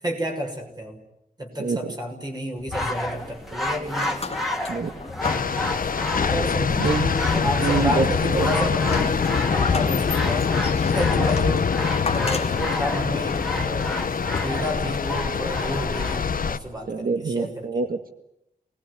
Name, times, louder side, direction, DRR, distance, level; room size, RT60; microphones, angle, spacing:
voice 1, 0.0-1.0 1.4-4.1 6.1-9.0 9.4-10.5 10.9-11.7 12.1-14.0 14.4-17.6, equal, 25° right, 2 dB, 6.4 m, -31 dB
voice 2, 1.6-1.9 4.7-4.9 6.7-8.6 9.0-9.1 16.9-18.1, right 4 dB, 75° right, 8 dB, 1.8 m, -27 dB
sound 1, 2.6-3.5 3.9-6.7 7.3-8.1 8.4-14.9 15.7-15.8, left 4 dB, 40° left, 2.0 m, -35 dB
sound 2, 2.7-16.2, left 1 dB, ahead, 3.5 m, -31 dB
sound 3, 5.2-16.6, left 6 dB, 65° left, 1.1 m, -24 dB
29.0 x 20.5 x 9.8 m, 0.81 s
wide cardioid pair, 150°, 15 cm